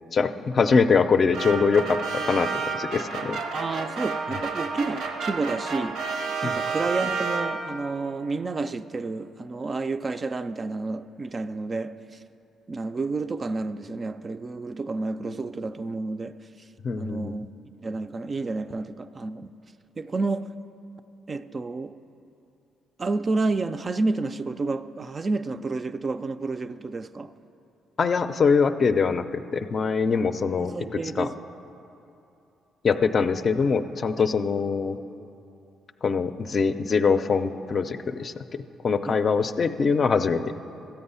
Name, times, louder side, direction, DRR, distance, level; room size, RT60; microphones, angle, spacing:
voice 1, 0.1-2.0 2.2-2.5 2.7-3.4 6.4-6.5 16.8-17.3 28.0-30.7 31.2-31.3 32.8-35.0 36.0-40.5, left 5 dB, 45° left, 0.5 m, -23 dB
sound 1, 1.3-7.9, right 4 dB, 85° right, 0.8 m, -30 dB
voice 2, 3.5-12.2 12.7-16.4 17.0-17.5 17.8-19.5 20.0-20.5 21.3-22.0 23.0-27.3 30.6-31.3 39.0-39.2, right 3 dB, 35° right, 0.3 m, -30 dB
13.5 x 7.9 x 5.6 m
cardioid pair, 90°, 0 cm